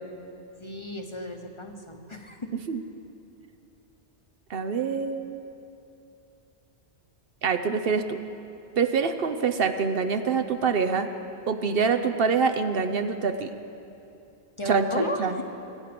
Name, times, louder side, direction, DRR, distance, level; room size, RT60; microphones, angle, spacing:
voice 1, 0.6-2.4 14.6-15.4, left 1 dB, 30° left, 4 dB, 0.9 m, -34 dB
voice 2, 4.5-5.4 7.4-8.2 8.8-11.1 11.5-13.5 14.6-15.4, right 5 dB, 60° right, 8 dB, 0.9 m, -25 dB
24.5 x 9.1 x 6.0 m, 2.8 s
omnidirectional pair, 1.1 m